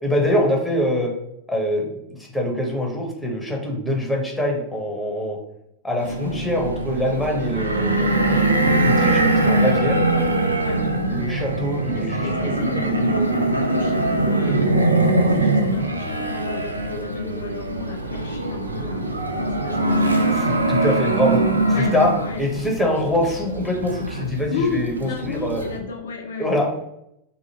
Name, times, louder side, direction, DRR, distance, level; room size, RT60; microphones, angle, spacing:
voice 1, 0.0-1.1 1.5-1.9 2.3-5.4 5.8-10.0 11.1-12.6 20.3-21.4 21.8-22.1 22.4-25.6 26.4-26.9, left 1 dB, 5° left, -1 dB, 0.8 m, -24 dB
sound 1, 6.0-25.8, right 2 dB, 80° right, 0.3 m, -22 dB
voice 2, 9.9-10.2 10.6-10.8 11.9-14.9 15.3-19.1 19.4-20.1 21.7-21.9 22.2-22.4 24.5-26.5, left 5 dB, 65° left, 1 dB, 0.5 m, -32 dB
2.9 x 2.5 x 2.8 m, 0.81 s
figure-of-eight pair, 90°, 0 cm